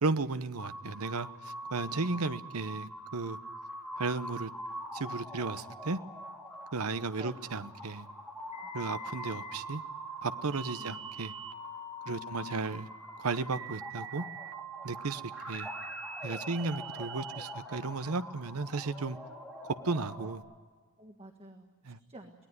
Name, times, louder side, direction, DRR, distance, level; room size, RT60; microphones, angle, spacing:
voice 1, 0.0-3.4 4.0-4.5 4.9-6.0 6.7-8.1 8.7-9.8 10.2-11.3 12.1-12.9 13.2-14.2 14.8-15.2 15.5-15.7 16.2-19.2 19.6-20.4 21.9-22.0, right 3 dB, 80° right, 0.9 m, -34 dB
sound 1, 0.6-20.4, equal, 5° right, 4.7 m, -44 dB
voice 2, 1.9-2.2 7.2-7.3 8.6-9.0 10.8-11.0 12.0-12.7 20.2-20.3 21.0-22.3, right 1 dB, 25° right, 1.7 m, -51 dB
sound 2, 8.5-17.5, right 4 dB, 65° right, 1.7 m, -45 dB
23.5 x 18.5 x 9.4 m
head